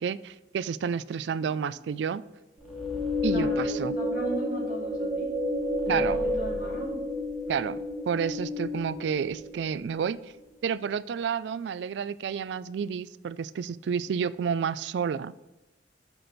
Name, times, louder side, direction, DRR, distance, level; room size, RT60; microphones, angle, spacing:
voice 1, 0.0-2.2 3.2-4.0 5.9-6.2 7.5-10.3 10.6-15.3, right 7 dB, 75° right, 17 dB, 0.3 m, -30 dB
sound 1, 2.6-10.0, left 1 dB, ahead, 1.4 m, -30 dB
voice 2, 3.2-5.3 5.8-7.0, equal, 50° left, -4 dB, 2.7 m, -38 dB
6.7 x 6.0 x 4.0 m, 1.0 s
head